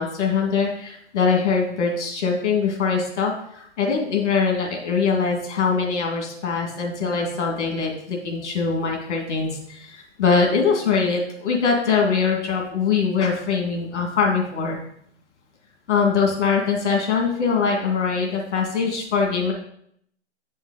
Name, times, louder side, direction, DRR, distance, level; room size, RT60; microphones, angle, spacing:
voice 1, 0.0-14.8 15.9-19.5, left 5 dB, 70° left, 1 dB, 2.0 m, -22 dB
8.2 x 5.4 x 3.9 m, 0.68 s
hypercardioid pair, 125°, 36 cm